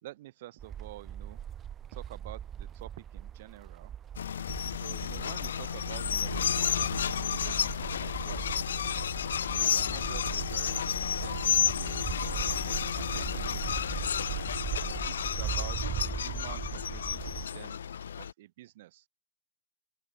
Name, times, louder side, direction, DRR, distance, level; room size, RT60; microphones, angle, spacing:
voice 1, 0.0-1.4 1.9-3.9 4.8-8.4 9.5-14.1 14.8-17.8 18.2-19.0, right 16 dB, 55° right, 2.8 m, -49 dB
sound 1, 0.6-17.5, right 9 dB, 20° right, 0.4 m, -39 dB
sound 2, 4.1-18.3, left 8 dB, 80° left, 0.6 m, -31 dB
open air
hypercardioid pair, 135°, 0 cm